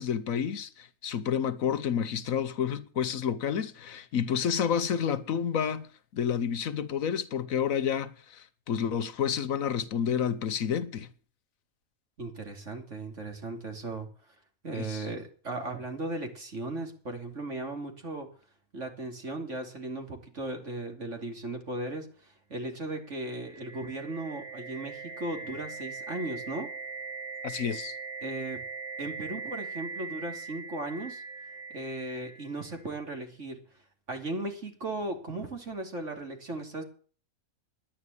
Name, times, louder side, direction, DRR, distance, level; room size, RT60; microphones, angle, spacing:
voice 1, 0.0-5.9 6.1-11.1 14.7-15.1 27.4-27.9, left 8 dB, 75° left, 1.3 m, -30 dB
voice 2, 12.2-14.1 14.6-18.3 18.7-26.7 28.2-28.6 29.0-31.2 31.7-33.6 34.1-36.8, right 2 dB, 55° right, 3.2 m, -37 dB
sound 1, 23.1-32.9, right 4 dB, 80° right, 3.2 m, -41 dB
11.0 x 9.7 x 8.3 m
omnidirectional pair, 1.5 m